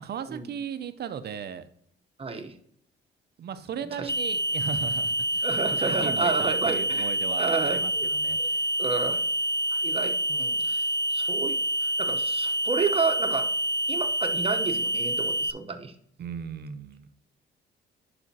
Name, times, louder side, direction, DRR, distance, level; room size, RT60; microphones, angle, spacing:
voice 1, 0.0-1.7 3.4-8.6 16.2-17.1, right 7 dB, 55° right, 11 dB, 0.6 m, -36 dB
voice 2, 2.2-2.6 3.9-4.1 5.4-8.1 8.4-8.5 8.8-9.2 9.8-10.9 11.1-13.5 13.9-15.9, right 4 dB, 30° right, 5 dB, 0.9 m, -30 dB
sound 1, 4.1-15.5, right 1 dB, 15° left, 0.3 m, -27 dB
11.0 x 4.9 x 2.8 m, 0.67 s
cardioid pair, 90°, 20 cm